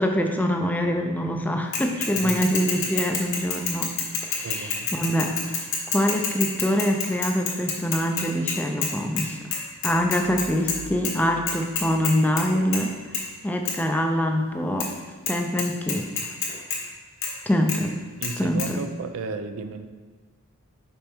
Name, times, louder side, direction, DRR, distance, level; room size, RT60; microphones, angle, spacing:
voice 1, 0.0-3.9 4.2-5.4 5.9-9.5 9.8-12.9 13.4-14.9 15.3-16.3 17.5-18.0 18.4-18.8, equal, 10° left, 3 dB, 0.4 m, -24 dB
Bicycle / Mechanisms, 1.7-8.9 9.2-9.3 9.5-10.8 11.0-11.1 11.5-12.4 12.7-12.9 13.1-13.2 13.7-13.8 14.8-14.9 15.3-15.4 15.6-16.8 17.2-17.3 17.7-17.8 18.2-18.3 18.6-18.7, left 5 dB, 60° left, 1.2 m, -27 dB
voice 2, 2.1-2.4 4.4-4.9 18.2-19.9, right 4 dB, 70° right, 8 dB, 0.4 m, -34 dB
sound 1, 10.1-12.8, right 1 dB, 35° right, 1.1 m, -47 dB
5.3 x 4.3 x 4.5 m, 1.4 s
head